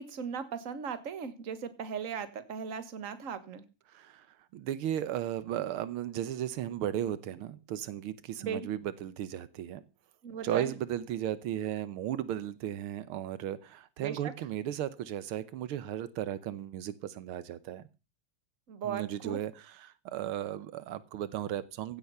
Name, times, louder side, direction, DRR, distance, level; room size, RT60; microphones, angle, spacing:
voice 1, 0.0-3.6 8.4-8.7 10.2-10.7 14.0-14.2 18.7-19.4, right 7 dB, 40° right, 12 dB, 1.7 m, -37 dB
voice 2, 3.9-4.3 4.5-9.8 10.4-17.9 18.8-22.0, right 11 dB, 85° right, 16 dB, 1.7 m, -35 dB
16.0 x 8.4 x 5.6 m, 0.31 s
omnidirectional pair, 2.3 m